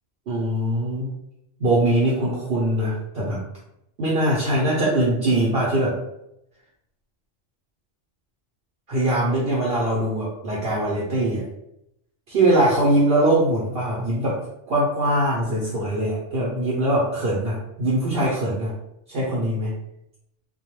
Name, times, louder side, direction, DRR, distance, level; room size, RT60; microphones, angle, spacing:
voice 1, 0.3-1.1 1.6-3.4 4.0-6.0 8.9-11.4 12.3-14.4 14.7-18.7 19.1-19.7, right 1 dB, 60° right, -6 dB, 0.8 m, -22 dB
2.2 x 2.1 x 2.9 m, 0.80 s
omnidirectional pair, 1.3 m